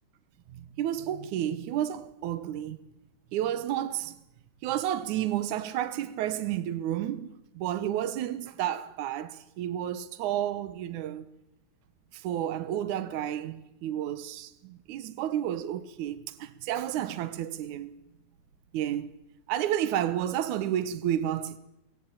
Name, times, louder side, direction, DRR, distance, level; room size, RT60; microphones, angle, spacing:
voice 1, 0.5-2.8 3.3-4.2 4.6-11.3 12.1-17.9 18.7-19.1 19.5-21.6, right 11 dB, 90° right, 1.7 m, -31 dB
20.5 x 16.5 x 8.8 m
omnidirectional pair, 5.0 m